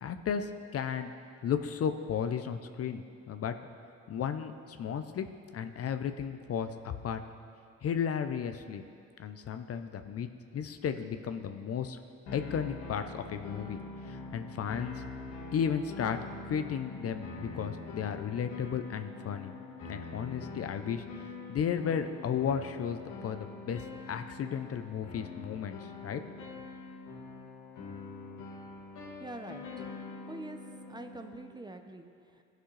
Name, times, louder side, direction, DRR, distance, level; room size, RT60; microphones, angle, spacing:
voice 1, 0.0-1.1 1.4-3.0 3.3-3.5 4.1-5.3 5.5-7.2 7.8-8.8 9.2-12.0 12.3-13.8 14.0-15.0 15.5-16.2 16.5-19.5 19.9-21.0 21.5-23.8 24.1-26.6, left 7 dB, 50° left, 8 dB, 0.7 m, -34 dB
sound 1, 12.3-31.5, left 3 dB, 70° left, 1.7 m, -44 dB
voice 2, 29.2-29.9 30.3-32.4, right 1 dB, 15° right, 7 dB, 0.7 m, -45 dB
16.5 x 6.1 x 3.3 m, 2.4 s
hypercardioid pair, 55°, 32 cm